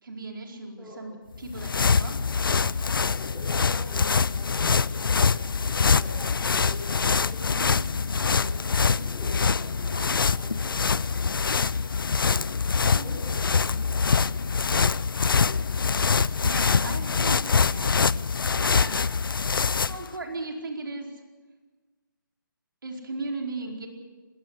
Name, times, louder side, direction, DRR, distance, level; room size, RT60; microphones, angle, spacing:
voice 1, 0.0-2.3 7.5-8.0 12.9-13.1 16.4-18.0 18.6-19.1 19.8-21.1 22.8-23.9, right 2 dB, 75° right, 1 dB, 4.7 m, -37 dB
sound 1, 1.3-20.1, left 5 dB, 80° left, 0.6 m, -24 dB
voice 2, 3.1-4.1 4.3-7.6 8.2-10.8 12.7-14.5, equal, ahead, -8 dB, 5.5 m, -44 dB
21.5 x 18.5 x 8.3 m, 1.3 s
hypercardioid pair, 175°, 11 cm